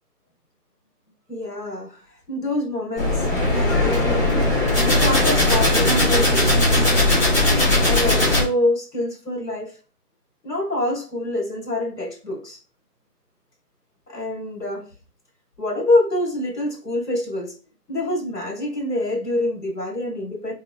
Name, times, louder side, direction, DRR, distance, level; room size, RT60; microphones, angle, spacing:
voice 1, 1.3-2.0 2.3-3.2 3.5-4.2 4.8-6.9 7.8-9.7 10.4-12.6 14.1-14.9 15.6-17.5 17.9-20.5, left 1 dB, 75° left, 1.5 m, -25 dB
sound 1, 3.0-8.4, left 1 dB, 35° left, 1.0 m, -18 dB
3.0 x 2.1 x 2.2 m
figure-of-eight pair, 160°, 49 cm